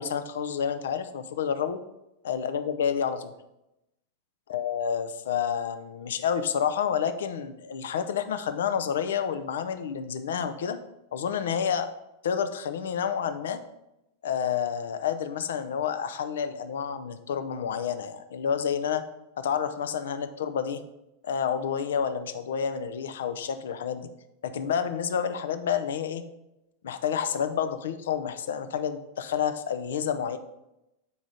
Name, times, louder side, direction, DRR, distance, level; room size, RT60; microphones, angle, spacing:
voice 1, 0.0-1.8 2.2-3.3 4.5-10.8 11.1-11.9 12.2-13.6 14.2-19.0 19.4-20.8 21.2-24.1 24.4-26.2 26.8-30.4, left 7 dB, 60° left, 10 dB, 0.5 m, -29 dB
7.0 x 4.9 x 3.9 m, 0.90 s
figure-of-eight pair, 90°, 0 cm